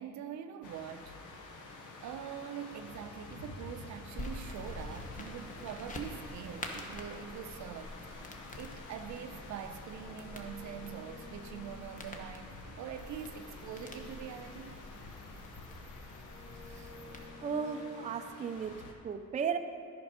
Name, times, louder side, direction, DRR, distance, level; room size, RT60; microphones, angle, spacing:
voice 1, 0.0-1.7 2.0-12.5 12.8-14.7, right 8 dB, 70° right, 8 dB, 0.6 m, -44 dB
sound 1, 0.6-18.9, left 3 dB, 85° left, 1.0 m, -49 dB
sound 2, 4.2-17.3, left 1 dB, 25° left, 1.0 m, -47 dB
sound 3, 9.0-15.7 16.0-18.3, left 2 dB, 60° left, 1.1 m, -55 dB
voice 2, 17.4-19.6, right 6 dB, 25° right, 7 dB, 0.4 m, -35 dB
10.5 x 5.2 x 5.1 m, 2.5 s
cardioid pair, 90°, 30 cm